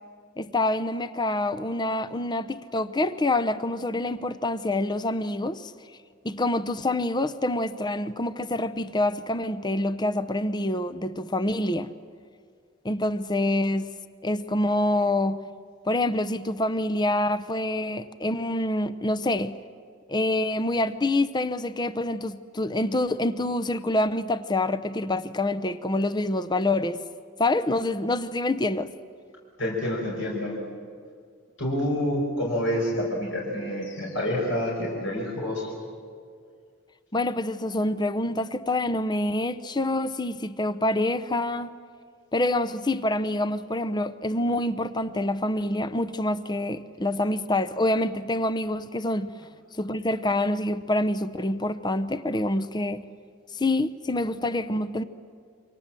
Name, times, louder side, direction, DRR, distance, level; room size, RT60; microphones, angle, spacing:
voice 1, 0.4-5.7 6.2-11.9 12.8-13.9 14.2-15.4 15.8-19.5 20.1-27.0 27.4-28.9 37.1-41.7 42.3-49.3 49.7-53.0 53.5-55.0, left 1 dB, 20° left, 0.7 m, -26 dB
voice 2, 29.6-30.6 31.6-35.7, left 1 dB, 65° left, 5.5 m, -28 dB
28.5 x 25.0 x 7.6 m
head